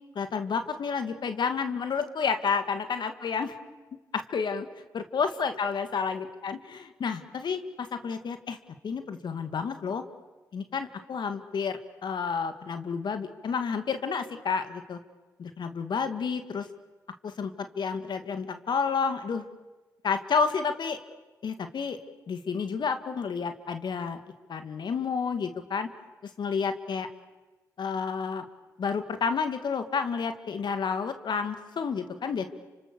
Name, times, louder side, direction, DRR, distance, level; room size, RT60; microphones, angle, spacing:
voice 1, 0.2-3.6 4.1-4.7 4.9-8.6 8.8-10.0 10.5-15.0 15.4-16.7 17.2-19.4 20.0-21.0 21.4-22.0 22.3-24.2 24.5-25.9 26.4-27.1 27.8-28.4 28.8-32.5, left 5 dB, 65° left, 8 dB, 2.1 m, -30 dB
30.0 x 26.0 x 6.9 m, 1.2 s
supercardioid pair, 45°, 8 cm